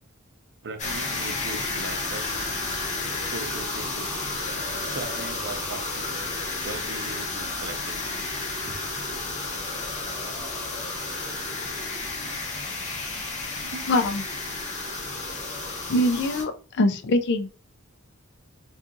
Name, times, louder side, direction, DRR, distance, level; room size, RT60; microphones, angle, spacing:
voice 1, 0.6-2.5 3.3-4.1 4.9-6.3 6.6-8.2 8.7-8.8 10.3-10.5 13.6-13.9 14.8-15.0, right 3 dB, 55° right, 0.6 m, -39 dB
sound 1, 0.8-16.4, left 3 dB, 35° left, 0.9 m, -31 dB
voice 2, 13.9-14.2 15.9-16.5 16.8-17.5, left 1 dB, 55° left, 0.4 m, -22 dB
2.7 x 2.4 x 3.8 m
head